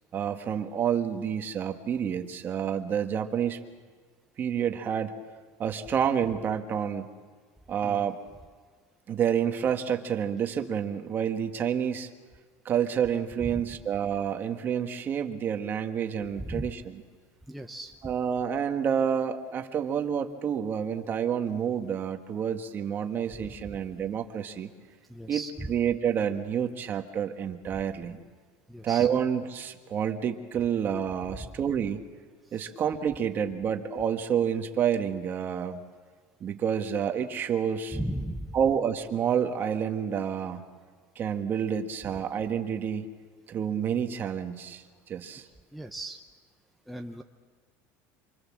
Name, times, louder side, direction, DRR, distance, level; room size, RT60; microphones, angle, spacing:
voice 1, 0.1-3.6 4.4-5.1 5.6-7.1 7.7-8.2 9.1-12.1 12.6-17.0 18.0-24.7 25.3-25.4 25.7-28.2 28.8-32.0 32.5-35.8 36.4-38.0 38.5-40.6 41.1-43.1 43.5-44.8 45.1-45.5, right 8 dB, 30° right, 6 dB, 1.5 m, -29 dB
voice 2, 16.4-16.7 17.5-18.1 23.4-23.8 25.1-25.7 27.7-27.8 28.7-29.1 31.4-31.5 32.5-32.7 37.9-38.6 45.7-46.2 46.9-47.2, right 1 dB, ahead, 2 dB, 0.8 m, -37 dB
27.0 x 25.0 x 7.5 m, 1.5 s
cardioid pair, 170°, 7 cm